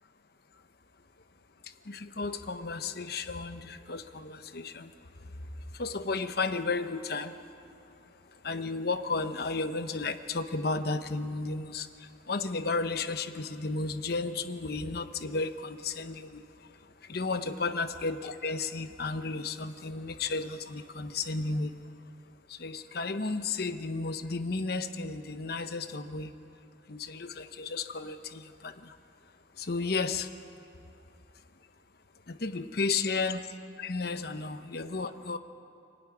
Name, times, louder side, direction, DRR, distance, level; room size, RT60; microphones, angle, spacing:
voice 1, 1.9-4.9 5.8-7.3 8.4-11.9 12.3-16.4 17.1-21.7 22.5-26.3 26.9-28.9 29.6-30.3 32.3-33.4 33.8-35.4, left 3 dB, 55° left, 9 dB, 0.9 m, -33 dB
24.5 x 12.0 x 9.9 m, 2.7 s
head